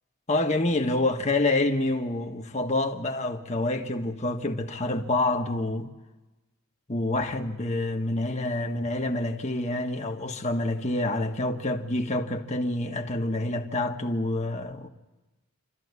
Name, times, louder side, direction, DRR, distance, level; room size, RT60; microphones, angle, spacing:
voice 1, 0.3-5.9 6.9-14.9, left 2 dB, 30° left, 1.5 m, -27 dB
27.5 x 13.5 x 9.7 m
head